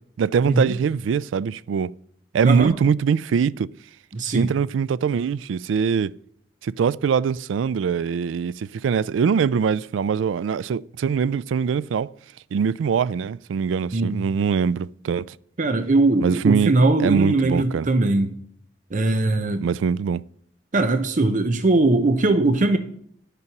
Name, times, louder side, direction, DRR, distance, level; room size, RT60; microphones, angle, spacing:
voice 1, 0.2-1.9 2.3-3.7 4.2-6.1 6.6-12.1 12.5-15.3 16.2-16.7 17.0-17.9 19.6-20.2, right 6 dB, 90° right, 0.3 m, -22 dB
voice 2, 4.1-4.5 13.9-14.2 15.6-18.3 18.9-19.6 20.7-22.8, right 2 dB, 45° right, 0.7 m, -20 dB
11.0 x 6.9 x 5.9 m
head